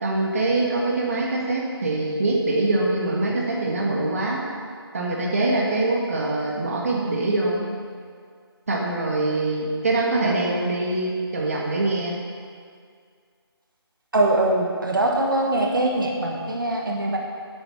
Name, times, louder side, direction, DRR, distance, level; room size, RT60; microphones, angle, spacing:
voice 1, 0.0-4.4 4.9-7.6 8.7-12.1, right 2 dB, 35° right, -2 dB, 1.5 m, -24 dB
voice 2, 14.1-17.2, right 1 dB, 55° right, 0 dB, 1.5 m, -22 dB
11.5 x 8.5 x 5.7 m, 2.1 s
figure-of-eight pair, 175°, 14 cm